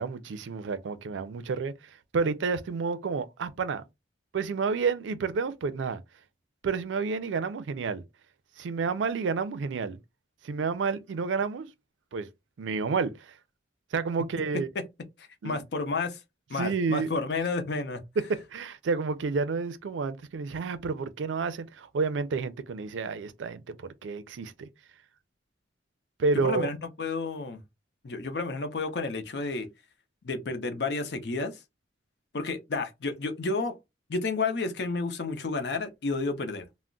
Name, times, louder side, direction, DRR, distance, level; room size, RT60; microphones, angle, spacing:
voice 1, 0.0-1.7 2.1-3.8 4.3-6.0 6.6-8.0 8.6-10.0 10.4-11.7 12.1-12.3 12.6-13.3 13.9-14.7 15.4-15.6 16.5-17.1 18.5-24.7 26.2-26.7, right 4 dB, 90° right, 0.4 m, -30 dB
voice 2, 15.4-16.2 16.5-18.0 26.4-27.6 28.0-29.7 30.2-31.6 32.3-33.7 34.1-36.7, left 3 dB, 65° left, 0.6 m, -31 dB
2.3 x 2.0 x 3.7 m
head